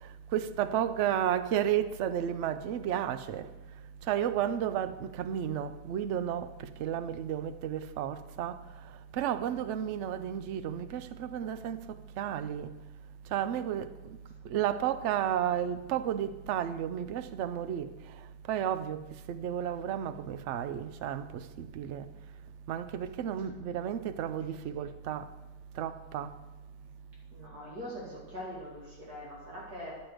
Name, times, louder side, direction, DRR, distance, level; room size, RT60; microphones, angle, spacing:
voice 1, 0.0-3.5 4.1-6.5 6.8-8.6 9.1-11.8 12.2-12.7 13.3-13.9 14.4-17.9 18.5-19.0 19.3-22.1 22.7-25.3 25.8-26.3, right 10 dB, 80° right, 0.6 m, -32 dB
voice 2, 27.3-30.1, left 1 dB, 60° right, 3.0 m, -42 dB
10.5 x 7.6 x 4.9 m
omnidirectional pair, 1.8 m